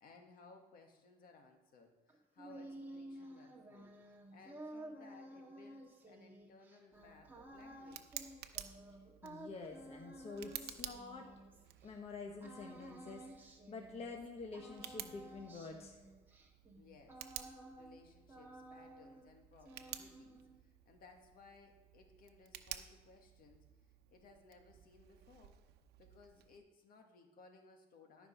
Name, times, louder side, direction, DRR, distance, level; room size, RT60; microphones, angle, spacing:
voice 1, 0.0-8.2 16.7-17.3 17.8-23.7 24.1-25.6 26.0-28.3, left 4 dB, 60° left, 4 dB, 1.8 m, -62 dB
sound 1, 2.1-11.9 12.4-14.3 14.5-18.0 18.3-19.3 19.6-20.6, right 1 dB, 10° right, 1.9 m, -53 dB
Tick, 6.9-26.6, right 12 dB, 75° right, 0.8 m, -53 dB
voice 2, 9.2-11.3 11.8-16.0, left 4 dB, 40° left, 2 dB, 1.3 m, -48 dB
13.0 x 5.3 x 5.8 m, 1.3 s
cardioid pair, 110°, 17 cm